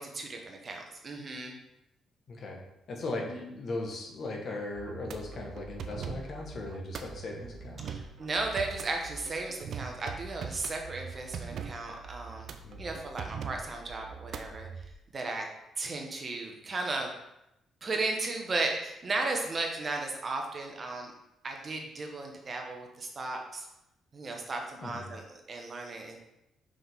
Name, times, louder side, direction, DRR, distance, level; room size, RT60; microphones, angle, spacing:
voice 1, 0.0-1.6 7.8-12.5 12.8-14.8 15.1-15.5 15.8-17.1 17.8-21.1 21.4-23.7 24.1-26.2, right 3 dB, 40° right, 2 dB, 1.3 m, -35 dB
voice 2, 2.3-2.6 2.9-7.8 12.6-12.9 24.8-25.1, left 2 dB, 55° left, 0 dB, 1.5 m, -38 dB
sound 1, 4.8-14.9, right 6 dB, 65° right, 0.6 m, -42 dB
5.7 x 5.4 x 3.7 m, 0.86 s
cardioid pair, 90°, 0 cm